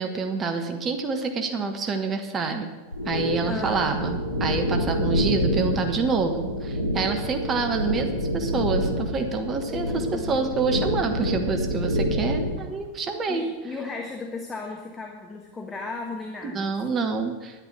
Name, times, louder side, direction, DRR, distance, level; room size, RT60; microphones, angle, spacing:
voice 1, 0.0-2.7 3.0-13.5 16.5-17.6, right 4 dB, 25° right, 5 dB, 1.3 m, -27 dB
sound 1, 2.9-12.6, equal, 80° right, 2.6 m, -27 dB
voice 2, 3.4-3.9 9.7-10.4 13.3-17.0, left 3 dB, 15° left, 2 dB, 1.3 m, -36 dB
10.5 x 10.5 x 6.2 m, 1.3 s
figure-of-eight pair, 90°, 0 cm